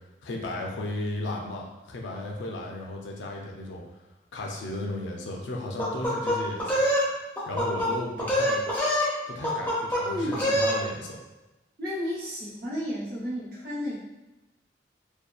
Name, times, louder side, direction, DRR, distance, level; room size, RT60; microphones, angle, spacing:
voice 1, 0.2-3.8 4.3-6.8 7.5-8.6 9.3-11.2, left 1 dB, 90° left, 0 dB, 0.5 m, -34 dB
sound 1, 5.8-7.1 7.4-7.9 8.2-9.1 9.4-10.0 10.3-10.8, equal, 10° left, 0.5 m, -25 dB
voice 2, 10.0-10.4 11.8-14.0, left 1 dB, 55° right, -7 dB, 0.8 m, -32 dB
2.7 x 2.2 x 2.3 m, 1.0 s
head